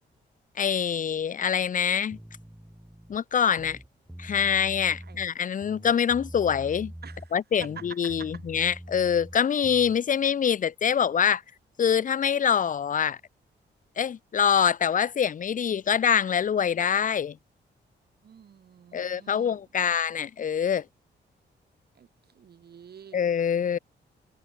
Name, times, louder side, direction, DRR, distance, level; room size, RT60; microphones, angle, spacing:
voice 1, 0.6-2.2 3.1-3.8 4.2-6.9 7.3-11.4 11.8-13.2 14.0-17.4 18.9-20.8 23.1-23.8, left 8 dB, 45° left, 0.7 m, -25 dB
sound 1, 2.1-3.2 3.5-5.3 5.6-7.3 7.6-10.0, right 1 dB, 5° right, 2.0 m, -44 dB
voice 2, 7.0-7.3 7.6-8.3 18.2-19.6 21.9-22.1 22.3-23.2, right 8 dB, 60° right, 3.4 m, -47 dB
wide cardioid pair, 125°, 19 cm